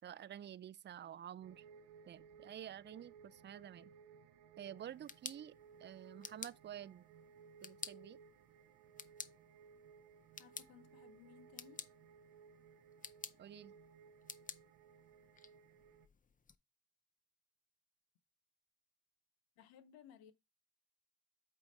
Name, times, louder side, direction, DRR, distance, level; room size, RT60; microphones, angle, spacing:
voice 1, 0.0-1.6 2.1-3.9 4.6-7.0 7.6-8.2 13.4-13.7, right 10 dB, 35° right, 0.4 m, -50 dB
sound 1, 1.4-16.1, right 6 dB, 80° right, 0.6 m, -61 dB
sound 2, 4.8-16.6, left 5 dB, 25° left, 0.5 m, -53 dB
voice 2, 10.4-11.9 19.6-20.3, left 9 dB, 85° left, 0.6 m, -61 dB
8.1 x 3.5 x 3.8 m
supercardioid pair, 45°, 34 cm